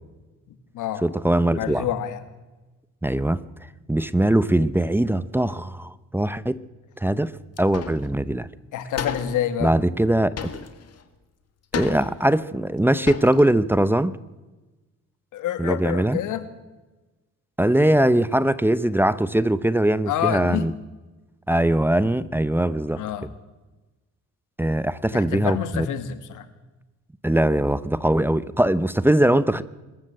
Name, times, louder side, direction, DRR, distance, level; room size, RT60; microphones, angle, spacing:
voice 1, 1.0-1.9 3.0-3.4 3.9-6.6 7.0-7.3 7.6-8.5 9.6-10.3 11.7-14.1 15.6-16.2 17.6-20.7 21.5-23.0 24.6-25.9 27.2-29.6, right 1 dB, 5° right, 16 dB, 0.8 m, -21 dB
voice 2, 1.5-2.2 8.7-9.7 15.3-16.4 20.1-20.7 23.0-23.3 25.1-26.5, left 10 dB, 85° left, 11 dB, 2.0 m, -27 dB
sound 1, 7.6-8.1 8.4-8.5 9.0-9.4 10.4-11.0 11.7-12.3 12.8-12.9 13.1-13.5, left 7 dB, 55° left, 2.2 m, -32 dB
24.5 x 14.0 x 7.8 m, 1.2 s
cardioid pair, 90°, 30 cm